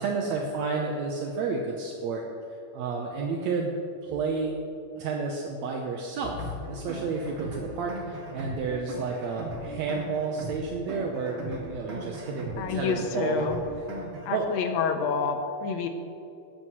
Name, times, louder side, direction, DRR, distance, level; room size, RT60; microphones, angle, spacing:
voice 1, 0.0-2.2 2.7-3.7 4.0-4.6 5.0-13.5 14.3-14.5, right 4 dB, 75° right, 0 dB, 2.0 m, -31 dB
Bowed string instrument, 6.2-11.3, left 6 dB, 35° left, 1.5 m, -47 dB
sound 1, 6.4-14.4, right 2 dB, 45° right, 2.3 m, -39 dB
voice 2, 12.6-13.6 14.2-15.9, left 5 dB, 75° left, 6 dB, 2.0 m, -28 dB
14.5 x 11.5 x 3.1 m, 2.6 s
omnidirectional pair, 3.4 m